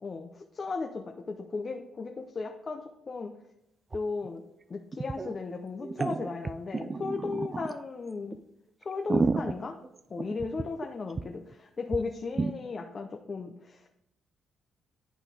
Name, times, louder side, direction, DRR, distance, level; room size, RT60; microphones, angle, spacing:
voice 1, 0.0-3.3 3.9-4.4 4.7-8.4 8.8-9.8 10.1-14.0, left 4 dB, 35° left, 3 dB, 0.7 m, -36 dB
sound 1, 3.9-4.0 4.2-4.3 4.9-5.3 5.8-7.8 8.3-8.4 8.8-10.9 11.2-11.3 11.5-11.6 11.9-12.0 12.4-12.5, right 3 dB, 30° right, 0.4 m, -31 dB
11.0 x 4.0 x 3.5 m, 0.83 s
cardioid pair, 90°, 0 cm